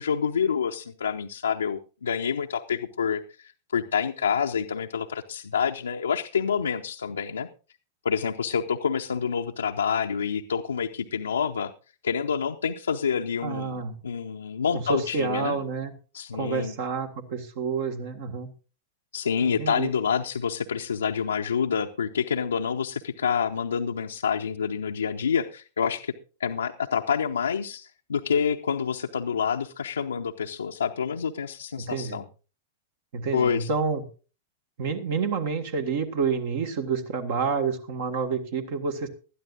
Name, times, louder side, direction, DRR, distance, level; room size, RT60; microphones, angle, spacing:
voice 1, 0.0-7.5 8.0-11.7 12.0-15.6 16.1-16.7 19.1-26.1 26.4-32.2 33.3-33.7, left 6 dB, 70° left, 1 dB, 0.7 m, -27 dB
voice 2, 13.4-14.0 14.7-15.9 16.3-18.5 19.4-19.9 31.8-32.2 33.1-34.0 34.8-39.1, right 5 dB, 50° right, 7 dB, 1.6 m, -29 dB
19.5 x 12.5 x 2.5 m, 0.34 s
figure-of-eight pair, 95°, 0 cm